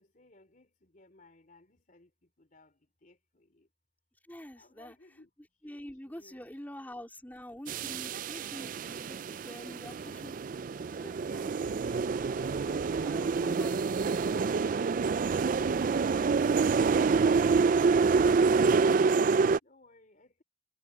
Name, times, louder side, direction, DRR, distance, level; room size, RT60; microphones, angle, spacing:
voice 1, 0.0-3.7 4.5-5.3 5.6-5.7 6.0-6.6 9.6-10.4 19.6-20.4, left 2 dB, 45° left, 3.4 m, -60 dB
voice 2, 4.3-4.9 5.6-10.4 11.0-13.7, equal, 10° left, 3.7 m, -46 dB
sound 1, 7.7-19.6, right 4 dB, 45° right, 0.3 m, -27 dB
head